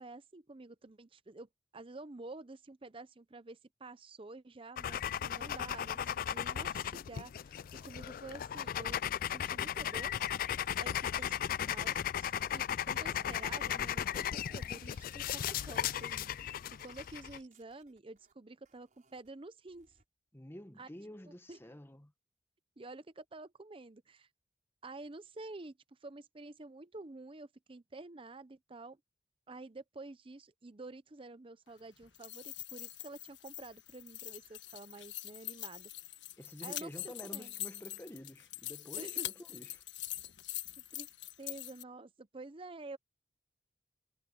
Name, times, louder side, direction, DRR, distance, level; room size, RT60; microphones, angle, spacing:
voice 1, 0.0-9.0 9.3-10.1 10.8-16.5 16.8-19.9 20.8-20.9 21.5-21.6 22.8-24.3 24.8-29.0 29.5-35.9 36.6-37.5 39.0-39.3 40.9-41.1 41.4-43.0, right 2 dB, 30° right, 0.7 m, -49 dB
sound 1, 4.8-17.4, left 9 dB, 50° left, 0.3 m, -36 dB
sound 2, 10.2-12.6 13.0-13.7 14.1-18.3 18.6-19.3 19.7-20.0, right 4 dB, 45° right, 6.2 m, -63 dB
voice 2, 20.3-22.1 36.4-39.8, left 1 dB, 15° left, 1.0 m, -49 dB
sound 3, 32.0-41.8, left 14 dB, 80° left, 1.4 m, -43 dB
head